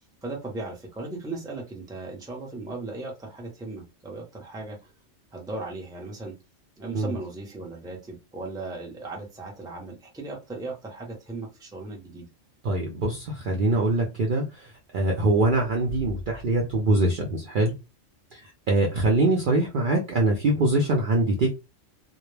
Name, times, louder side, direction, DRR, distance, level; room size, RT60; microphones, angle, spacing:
voice 1, 0.2-4.9 5.3-6.3 6.8-12.3, right 3 dB, 5° right, -2 dB, 0.4 m, -37 dB
voice 2, 12.6-17.7 18.3-21.5, right 2 dB, 60° right, 1 dB, 0.5 m, -23 dB
2.2 x 2.0 x 3.1 m, 0.26 s
omnidirectional pair, 1.3 m